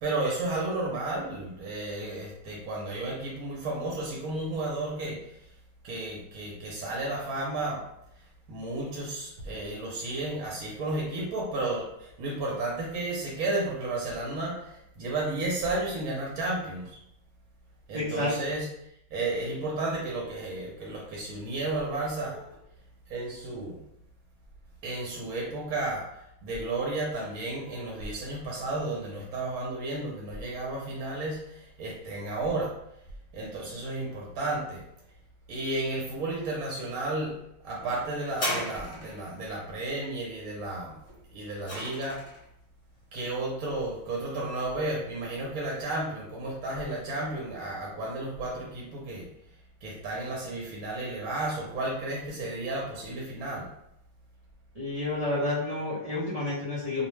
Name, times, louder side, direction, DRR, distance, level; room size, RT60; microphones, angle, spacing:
voice 1, 0.0-5.4 5.8-7.8 8.5-17.0 17.9-18.7 19.1-22.6 23.1-23.8 24.8-32.7 33.3-34.8 35.5-37.4 37.6-41.0 41.3-42.3 43.1-49.3 49.8-53.7, right 2 dB, 80° right, -3 dB, 1.1 m, -33 dB
voice 2, 17.9-18.6 54.7-57.1, left 2 dB, 50° right, -9 dB, 0.4 m, -30 dB
sound 1, 38.3-39.4 41.1-42.4 43.3-43.4, equal, 30° left, 1.0 m, -34 dB
2.6 x 2.1 x 3.1 m, 0.77 s
omnidirectional pair, 1.5 m